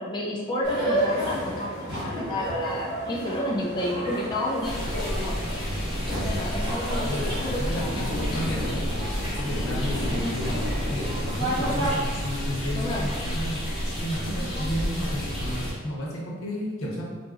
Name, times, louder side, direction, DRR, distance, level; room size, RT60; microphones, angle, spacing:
voice 1, 0.0-4.8 5.2-5.4 6.2-8.2 10.2-10.4 12.7-13.1 14.3-14.7, left 1 dB, 20° left, -4 dB, 0.4 m, -31 dB
sound 1, 0.6-11.9, right 1 dB, 25° right, 1.3 m, -31 dB
sound 2, 4.6-15.7, equal, ahead, 1.2 m, -30 dB
voice 2, 6.9-7.3 7.6-8.8 9.4-10.5 10.9-13.6 14.0-17.0, equal, 90° left, -4 dB, 0.8 m, -32 dB
3.9 x 2.6 x 2.3 m, 1.5 s
head